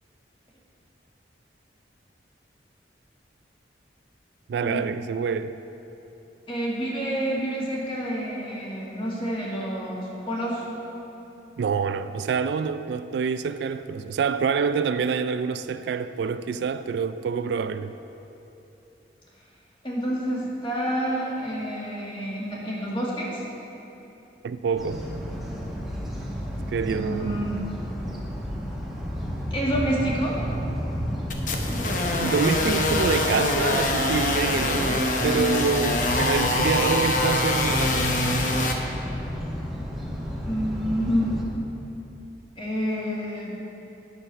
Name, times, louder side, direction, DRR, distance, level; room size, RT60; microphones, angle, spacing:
voice 1, 4.5-5.6 11.6-17.9 24.4-25.0 26.7-27.5 32.2-38.1, right 6 dB, 75° right, 0.3 m, -26 dB
voice 2, 6.5-10.6 19.8-23.4 26.9-27.6 29.5-30.4 40.5-41.3 42.6-43.6, equal, 30° left, 1.9 m, -28 dB
sound 1, 24.8-41.4, equal, ahead, 1.0 m, -32 dB
sound 2, 31.3-38.7, left 2 dB, 45° left, 0.8 m, -24 dB
9.7 x 5.9 x 6.7 m
head